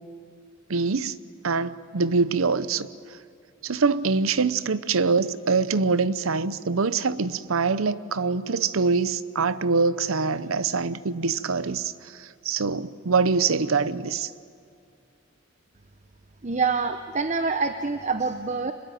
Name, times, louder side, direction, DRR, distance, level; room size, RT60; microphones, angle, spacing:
voice 1, 0.7-1.2 1.4-2.9 3.6-11.9 12.2-14.3, right 4 dB, 85° right, 0.8 m, -24 dB
voice 2, 16.4-18.7, right 4 dB, 35° right, 0.8 m, -26 dB
25.5 x 21.0 x 9.2 m
head